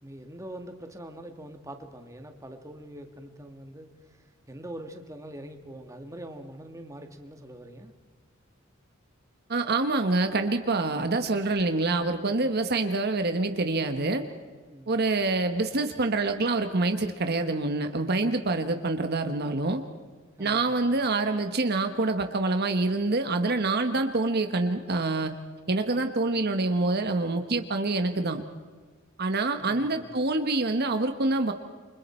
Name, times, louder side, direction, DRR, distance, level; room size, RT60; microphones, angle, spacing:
voice 1, 0.0-3.9 4.5-7.9 14.7-15.0 20.4-20.9 29.6-30.0, right 1 dB, 15° right, 5 dB, 1.8 m, -43 dB
voice 2, 9.5-14.3 14.9-19.8 20.4-25.3 25.7-28.4 29.2-31.5, right 2 dB, 50° right, 7 dB, 1.2 m, -26 dB
28.5 x 25.0 x 4.4 m, 1.5 s
head